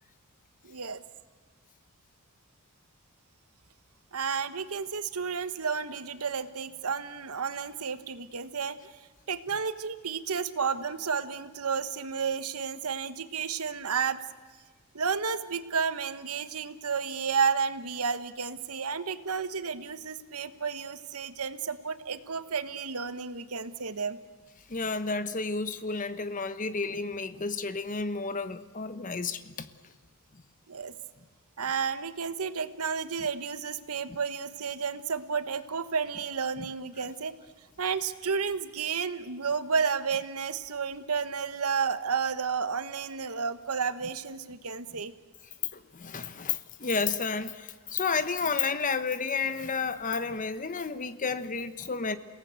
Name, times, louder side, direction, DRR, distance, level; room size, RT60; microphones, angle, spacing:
voice 1, 0.6-1.0 4.1-8.9 9.3-14.2 14.9-24.2 30.7-30.9 31.6-37.3 37.8-45.1, right 6 dB, 80° right, 1.2 m, -31 dB
voice 2, 24.7-29.7 34.1-34.2 36.6-36.7 45.7-52.2, left 4 dB, 35° left, 1.0 m, -31 dB
29.0 x 18.0 x 8.1 m
head